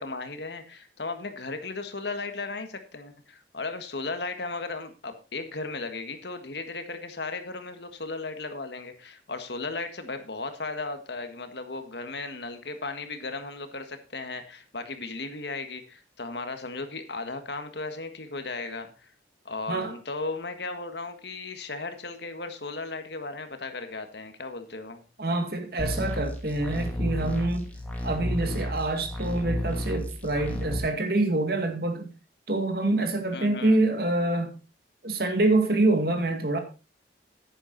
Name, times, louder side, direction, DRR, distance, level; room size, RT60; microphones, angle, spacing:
voice 1, 0.0-19.1 19.4-25.0 33.3-33.8, left 3 dB, 65° left, 1.6 m, -36 dB
voice 2, 25.2-27.7 28.0-32.1 32.5-34.5 35.0-36.6, right 2 dB, 55° right, 2.0 m, -26 dB
sound 1, 25.8-30.8, equal, 10° left, 2.3 m, -32 dB
10.5 x 9.8 x 4.0 m
head